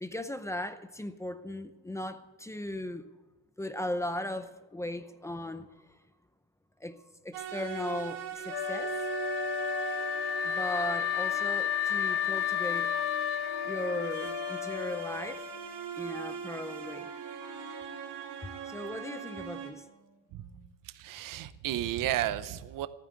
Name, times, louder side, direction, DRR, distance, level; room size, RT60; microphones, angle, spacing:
voice 1, 0.0-3.1 3.6-6.0 6.8-9.0 10.4-12.9 13.6-15.5 16.0-17.1 18.7-19.9, left 1 dB, 5° left, 0.6 m, -37 dB
sound 1, 7.3-19.7, right 8 dB, 85° right, 2.9 m, -40 dB
Wind instrument woodwind instrument, 8.5-15.5, left 10 dB, 65° left, 0.8 m, -32 dB
Wind instrument woodwind instrument 2, 14.0-21.2, equal, 40° left, 3.2 m, -54 dB
voice 2, 20.8-22.9, right 13 dB, 55° right, 0.8 m, -33 dB
14.5 x 9.1 x 8.5 m
cardioid pair, 160°, 40 cm